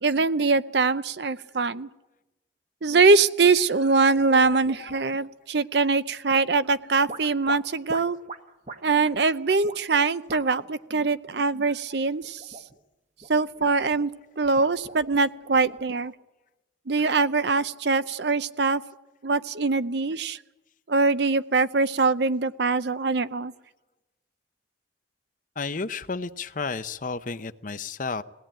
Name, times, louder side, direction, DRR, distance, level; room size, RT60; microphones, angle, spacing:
voice 1, 0.0-1.9 2.8-8.2 8.8-12.4 13.3-14.1 14.4-16.1 16.9-18.8 19.2-20.4 20.9-23.5, right 4 dB, 60° right, 14 dB, 0.7 m, -23 dB
sound 1, 4.0-5.3 6.3-6.7 7.1-8.8 9.1-9.3 9.6-9.8 10.3-10.7 11.0-11.4 12.2-12.8 13.2-14.1 14.4-16.0, right 2 dB, 35° right, 1.2 m, -42 dB
voice 2, 4.4-5.0 25.6-28.2, left 4 dB, 45° left, 12 dB, 0.7 m, -32 dB
21.5 x 17.5 x 8.9 m, 1.0 s
head